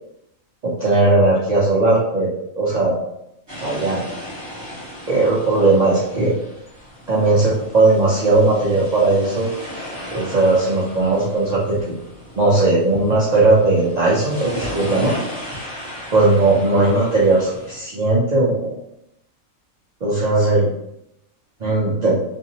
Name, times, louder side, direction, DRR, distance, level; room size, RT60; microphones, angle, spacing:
voice 1, 0.6-3.0 3.6-4.0 5.1-6.3 7.1-9.5 10.1-12.0 12.4-15.1 16.1-18.7 20.0-20.7 21.6-22.2, right 2 dB, 60° right, -6 dB, 0.4 m, -17 dB
sound 1, 3.5-17.8, equal, 20° right, 1.3 m, -35 dB
2.6 x 2.5 x 2.7 m, 0.81 s
omnidirectional pair, 1.4 m